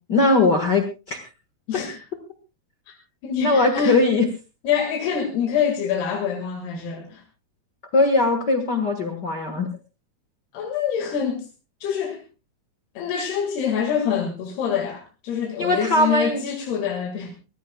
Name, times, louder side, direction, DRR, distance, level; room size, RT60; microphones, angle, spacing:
voice 1, 0.1-1.2 3.4-4.3 7.9-9.7 15.6-16.4, left 2 dB, 65° left, 5 dB, 1.0 m, -20 dB
voice 2, 1.7-2.0 2.9-3.0 3.2-4.0 4.6-7.2 10.5-11.5 11.8-12.2 13.0-17.3, left 7 dB, 85° left, 2 dB, 3.9 m, -25 dB
23.5 x 17.0 x 2.3 m, 0.30 s
omnidirectional pair, 4.4 m